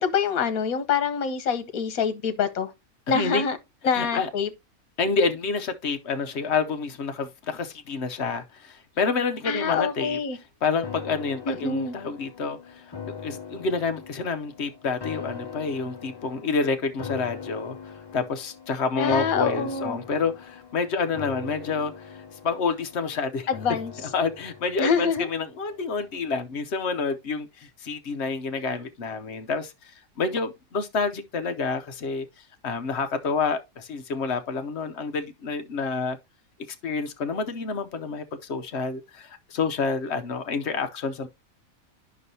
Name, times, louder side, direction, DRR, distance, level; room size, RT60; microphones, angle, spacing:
voice 1, 0.0-2.7 3.1-3.6 3.8-4.5 9.5-10.4 11.4-12.0 19.0-20.0 23.5-23.9 24.8-25.3, left 6 dB, 75° left, 1.3 m, -25 dB
voice 2, 3.1-3.5 3.9-4.3 5.0-10.2 10.6-23.5 24.1-32.3 32.6-36.2 36.8-41.3, left 4 dB, 55° left, 0.9 m, -28 dB
sound 1, 10.8-26.1 26.5-26.6, left 6 dB, 40° left, 0.3 m, -41 dB
9.4 x 6.0 x 2.7 m
omnidirectional pair, 1.5 m